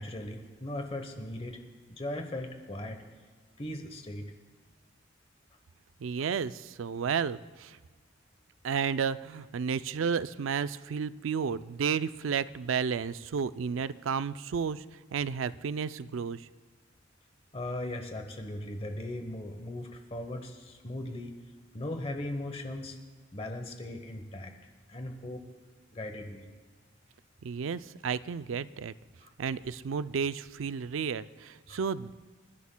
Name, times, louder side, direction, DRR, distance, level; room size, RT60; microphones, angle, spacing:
voice 1, 0.0-1.6 1.9-3.0 3.6-4.3 17.5-21.3 21.7-23.0 23.3-24.5 24.9-25.4 25.9-26.5 29.2-29.3 31.7-31.8, left 1 dB, 30° left, 5 dB, 1.0 m, -38 dB
voice 2, 6.0-7.8 8.6-14.8 15.1-16.5 27.4-28.9 29.4-32.1, right 6 dB, 90° right, 14 dB, 0.4 m, -32 dB
28.5 x 11.5 x 2.2 m, 1.5 s
head